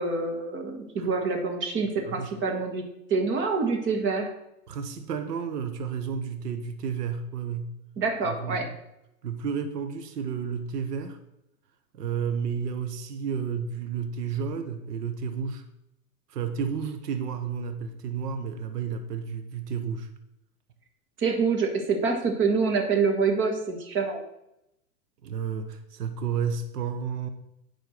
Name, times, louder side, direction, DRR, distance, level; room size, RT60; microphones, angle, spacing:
voice 1, 0.0-2.8 3.1-4.3 8.0-8.7 21.2-24.2, right 4 dB, 25° right, 4 dB, 1.6 m, -26 dB
voice 2, 4.7-7.7 8.3-8.7 9.2-11.2 11.9-15.6 16.3-20.1 25.2-27.3, right 6 dB, 80° right, 8 dB, 1.1 m, -31 dB
9.2 x 4.6 x 6.5 m, 0.85 s
hypercardioid pair, 135°, 47 cm